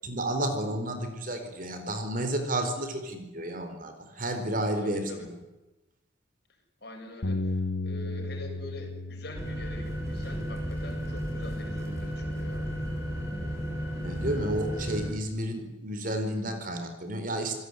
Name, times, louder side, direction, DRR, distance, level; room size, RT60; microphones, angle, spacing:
voice 1, 0.0-5.3 14.0-17.6, right 1 dB, 45° right, 7 dB, 4.4 m, -31 dB
voice 2, 4.8-5.3 6.8-12.7, left 2 dB, 55° left, 2 dB, 7.5 m, -44 dB
Bass guitar, 7.2-13.5, left 2 dB, 70° left, 1.6 m, -37 dB
sound 1, 9.3-15.1, equal, 15° right, 7.2 m, -33 dB
28.0 x 17.5 x 9.8 m, 1.0 s
head